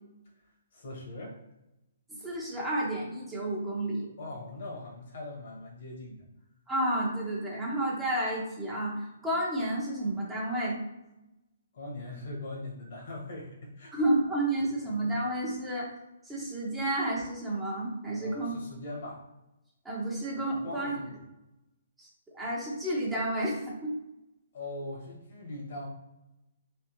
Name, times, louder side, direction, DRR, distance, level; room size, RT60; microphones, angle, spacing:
voice 1, 0.4-1.4 4.2-6.2 11.7-14.0 18.2-19.2 20.6-21.2 24.5-25.9, left 2 dB, 55° left, -1 dB, 1.4 m, -41 dB
voice 2, 2.2-4.1 6.7-10.8 13.9-15.9 16.2-18.5 19.8-21.0 22.0-22.1 22.3-24.0, right 1 dB, 10° right, -6 dB, 1.1 m, -31 dB
3.4 x 3.2 x 3.1 m, 0.94 s
figure-of-eight pair, 135°, 0 cm